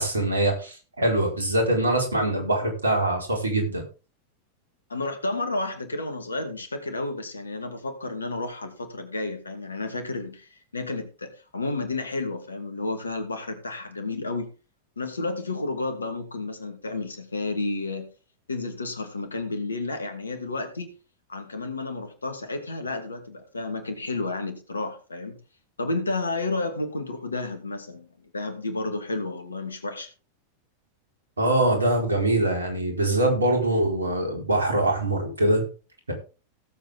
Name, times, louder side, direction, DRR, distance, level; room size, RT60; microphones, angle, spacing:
voice 1, 0.0-3.8 31.4-35.6 36.1-36.2, right 1 dB, 75° right, 2 dB, 4.4 m, -23 dB
voice 2, 4.9-14.5 15.0-18.1 18.5-20.9 21.3-25.4 25.8-28.1 28.3-30.1, left 2 dB, 75° left, 8 dB, 2.4 m, -31 dB
17.0 x 7.8 x 3.6 m, 0.34 s
figure-of-eight pair, 90°, 0 cm